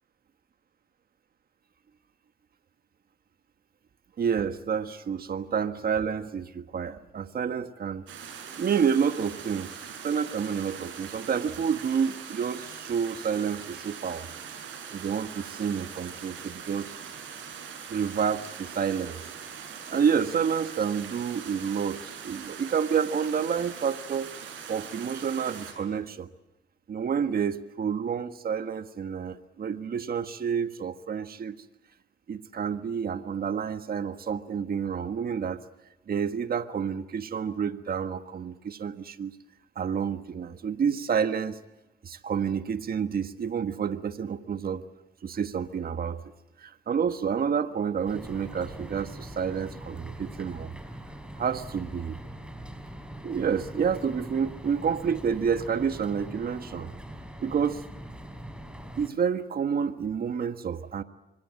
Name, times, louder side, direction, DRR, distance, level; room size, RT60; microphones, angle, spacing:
voice 1, 4.2-8.0 8.6-9.7 10.0-14.3 14.9-16.9 17.9-19.2 19.9-24.3 24.7-26.3 26.9-31.6 32.3-35.6 36.1-39.3 39.7-41.6 42.0-44.8 45.2-46.2 46.6-50.7 51.4-52.2 53.2-56.9 57.4-57.8 59.0-61.0, right 7 dB, 50° right, 9 dB, 1.5 m, -29 dB
sound 1, 8.1-25.7, right 7 dB, 80° right, 7.5 m, -42 dB
sound 2, 48.1-59.1, right 1 dB, 5° right, 4.4 m, -42 dB
25.5 x 24.5 x 7.7 m, 0.99 s
cardioid pair, 90°, 20 cm